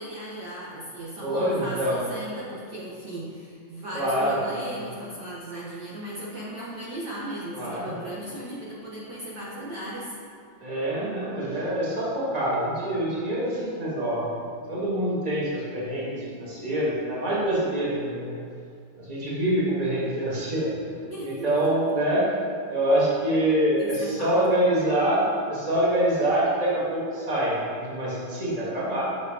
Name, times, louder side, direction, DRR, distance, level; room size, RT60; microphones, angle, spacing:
voice 1, 0.0-10.1 21.1-21.5 23.8-24.3, right 1 dB, 60° right, -6 dB, 1.4 m, -36 dB
voice 2, 1.2-2.0 3.9-4.8 7.5-8.0 10.6-18.3 19.0-20.7 21.2-22.3 22.7-29.0, right 1 dB, 20° right, -7 dB, 1.5 m, -25 dB
6.5 x 4.9 x 4.8 m, 2.2 s
omnidirectional pair, 2.3 m